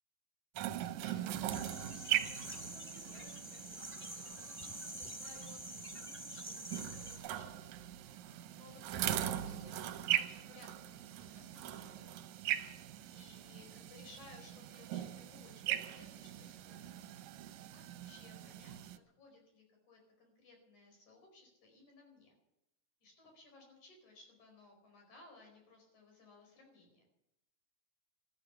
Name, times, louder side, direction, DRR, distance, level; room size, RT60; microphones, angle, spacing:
sound 1, 0.5-19.0, right 12 dB, 70° right, 2.0 m, -41 dB
voice 1, 0.8-7.6 8.5-12.1 13.0-17.1 17.7-22.3 23.0-27.0, left 3 dB, 70° left, 2 dB, 6.2 m, -60 dB
sound 2, 1.5-7.2, right 1 dB, 5° left, 1.7 m, -47 dB
14.0 x 13.5 x 7.1 m, 0.83 s
omnidirectional pair, 3.6 m